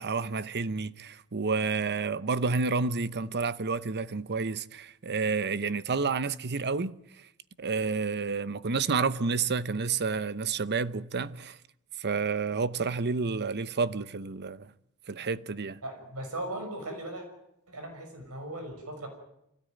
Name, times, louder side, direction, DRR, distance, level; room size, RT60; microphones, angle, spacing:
voice 1, 0.0-7.0 7.6-11.6 12.0-14.7 15.1-15.8, right 4 dB, 50° right, 0.8 m, -30 dB
voice 2, 15.8-17.3 17.7-19.1, right 1 dB, 85° right, 6.5 m, -38 dB
26.0 x 17.0 x 9.4 m
head